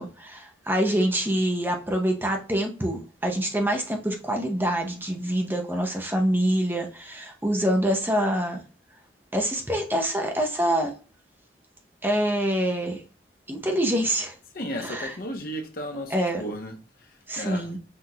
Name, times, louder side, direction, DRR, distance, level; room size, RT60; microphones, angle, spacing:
voice 1, 0.0-8.6 9.3-10.9 12.0-13.0 13.5-14.3 14.8-15.2 16.1-16.4 17.3-17.8, right 1 dB, 10° right, 0.6 m, -25 dB
voice 2, 14.5-16.1 16.4-16.7 17.4-17.7, equal, 55° left, 0.8 m, -33 dB
5.6 x 2.5 x 2.7 m
head